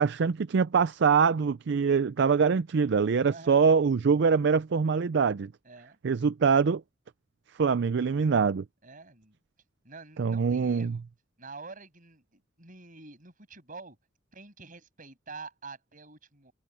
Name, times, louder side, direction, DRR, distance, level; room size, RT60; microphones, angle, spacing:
voice 1, 0.0-5.5 6.0-6.8 7.6-8.6 10.2-11.0, right 5 dB, 60° right, 0.4 m, -24 dB
voice 2, 3.2-3.6 5.6-6.0 8.8-9.4 9.8-11.0 11.4-14.0 14.3-16.5, right 3 dB, 45° right, 7.9 m, -47 dB
head